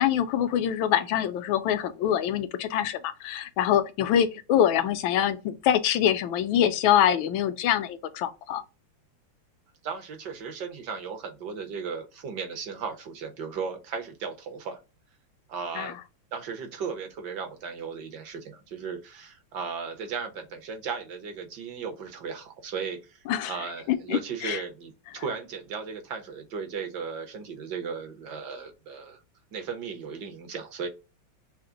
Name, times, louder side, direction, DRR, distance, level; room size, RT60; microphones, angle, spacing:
voice 1, 0.0-8.6 15.8-15.9 23.3-23.6 23.9-24.6, left 10 dB, 80° left, 1.4 m, -25 dB
voice 2, 9.8-14.8 15.5-16.0 16.3-23.2 23.5-29.2 29.5-30.9, right 5 dB, 60° right, 1.5 m, -36 dB
5.8 x 2.1 x 3.8 m
omnidirectional pair, 2.2 m